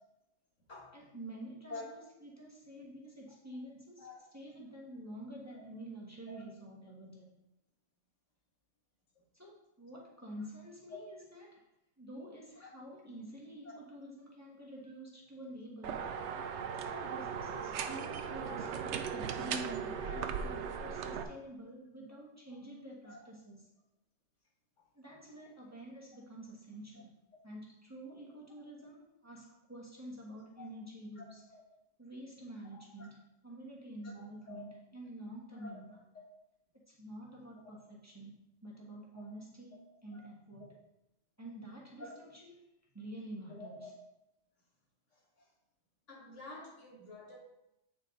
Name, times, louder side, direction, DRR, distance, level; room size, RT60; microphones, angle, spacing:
voice 1, 0.9-4.1 4.3-7.3 9.3-11.7 12.0-16.1 16.7-23.6 24.9-27.1 27.4-31.4 32.0-36.0 36.9-40.7 41.4-42.6 42.9-43.8, right 1 dB, 15° right, -5 dB, 1.4 m, -48 dB
sound 1, 15.8-21.2, right 7 dB, 70° right, 0.9 m, -38 dB
voice 2, 19.7-20.3 20.6-20.8 23.0-23.2 30.6-30.7 31.2-31.6 32.7-32.8 34.0-34.6 35.5-35.8 40.1-40.3 42.0-42.2 43.5-43.9 45.1-45.5 46.1-47.4, left 3 dB, 80° left, -3 dB, 2.1 m, -49 dB
8.5 x 4.7 x 3.8 m, 0.88 s
omnidirectional pair, 1.2 m